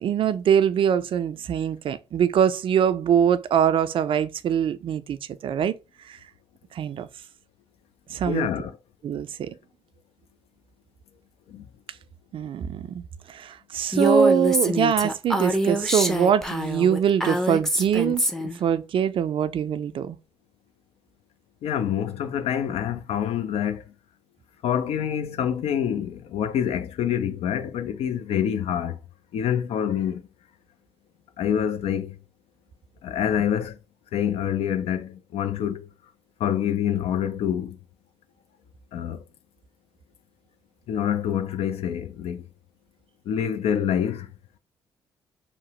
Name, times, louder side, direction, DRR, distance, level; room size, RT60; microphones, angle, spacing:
voice 1, 0.0-5.7 6.0-6.2 6.7-7.1 8.1-8.5 9.0-9.5 12.3-13.0 13.3-18.2 18.6-20.2, right 8 dB, 55° right, 0.3 m, -23 dB
voice 2, 8.2-8.7 11.5-11.6 21.6-23.8 24.6-29.0 29.3-30.2 31.4-32.2 33.0-33.8 34.1-35.9 36.4-37.8 38.9-39.2 40.9-42.5 43.3-44.3, left 9 dB, 65° left, 0.4 m, -26 dB
Female speech woman speaking, 13.9-18.6, equal, 5° left, 0.5 m, -25 dB
2.7 x 2.0 x 2.8 m
hypercardioid pair, 50°, 11 cm